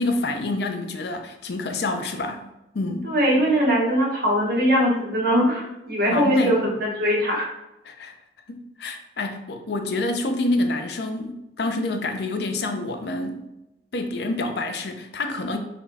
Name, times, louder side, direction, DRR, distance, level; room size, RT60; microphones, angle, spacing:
voice 1, 0.0-2.4 2.7-3.1 6.1-6.6 7.8-8.1 8.5-13.4 13.9-15.6, left 2 dB, 65° left, 5 dB, 0.5 m, -27 dB
voice 2, 3.0-7.5, equal, 55° right, -3 dB, 1.1 m, -21 dB
4.0 x 2.2 x 4.0 m, 0.90 s
head